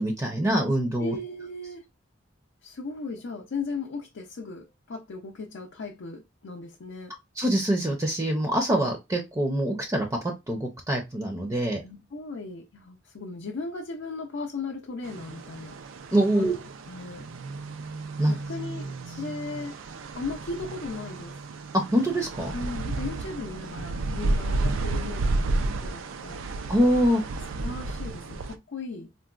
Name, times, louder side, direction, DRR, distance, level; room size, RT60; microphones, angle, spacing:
voice 1, 0.0-1.2 7.4-10.1 10.5-11.8 16.1-16.5 18.2-18.3 21.9-22.5 26.7-27.2, right 1 dB, 20° right, 0.5 m, -24 dB
voice 2, 1.0-1.9 2.6-7.2 11.8-15.8 16.3-16.5 16.9-17.3 18.3-19.8 20.2-21.4 22.5-26.5 27.6-29.1, left 3 dB, 70° left, 0.5 m, -37 dB
sound 1, 15.0-28.6, right 2 dB, 90° right, 0.4 m, -32 dB
3.8 x 2.1 x 2.4 m
head